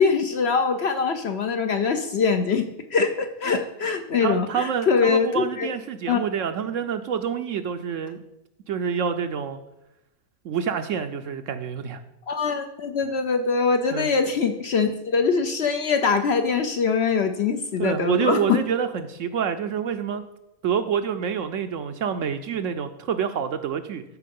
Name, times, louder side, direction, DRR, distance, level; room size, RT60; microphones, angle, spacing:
voice 1, 0.0-5.7 6.1-6.2 12.3-18.4, left 5 dB, 60° left, 7 dB, 0.7 m, -23 dB
voice 2, 4.2-8.2 8.7-9.6 10.4-12.0 13.9-14.1 17.8-20.2 20.6-24.0, right 7 dB, 65° right, 9 dB, 0.9 m, -27 dB
13.0 x 4.7 x 5.2 m, 0.90 s
omnidirectional pair, 1.6 m